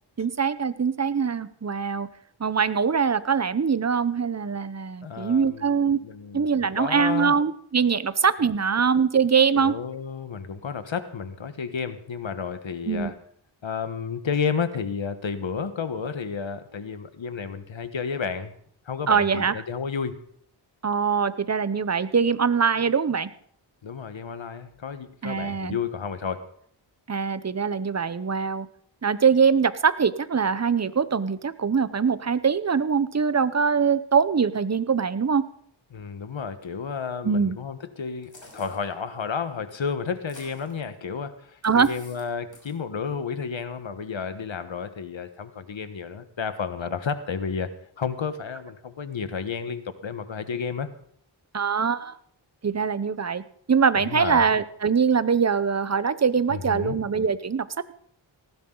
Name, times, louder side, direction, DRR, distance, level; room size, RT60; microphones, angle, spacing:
voice 1, 0.2-2.1 2.4-6.0 6.3-9.7 12.9-13.1 19.1-19.6 20.8-23.3 25.2-25.8 27.1-28.7 29.0-35.4 37.2-37.6 41.6-41.9 51.5-52.2 52.6-53.4 53.7-57.9, right 6 dB, 35° right, 14 dB, 0.8 m, -23 dB
voice 2, 5.0-7.4 9.5-13.2 13.6-18.5 18.8-20.2 23.8-26.5 35.9-47.7 48.0-50.9 54.0-54.4 56.5-57.0, left 6 dB, 75° left, 10 dB, 1.4 m, -31 dB
sound 1, 38.2-38.9 40.2-40.8 41.6-42.3 42.5-42.8, left 2 dB, 40° left, 5.9 m, -48 dB
19.0 x 15.5 x 3.9 m, 0.65 s
wide cardioid pair, 80°, 46 cm